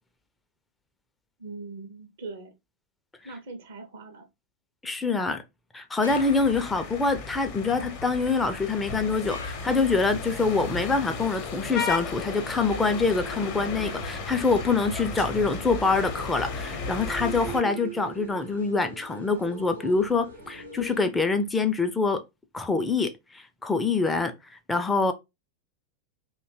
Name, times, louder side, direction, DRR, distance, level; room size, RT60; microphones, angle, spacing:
voice 1, 1.4-2.5 3.2-4.3, right 3 dB, 60° right, 0.5 m, -41 dB
voice 2, 4.8-5.4 5.7-22.2 22.5-25.1, left 4 dB, 10° left, 0.4 m, -25 dB
sound 1, 6.0-6.9 9.3-10.2, left 2 dB, 80° left, 0.5 m, -43 dB
sound 2, 6.0-17.6, left 4 dB, 45° left, 0.7 m, -35 dB
sound 3, 12.1-21.0, right 5 dB, 85° right, 1.0 m, -43 dB
2.7 x 2.2 x 2.6 m
figure-of-eight pair, 90°, 0 cm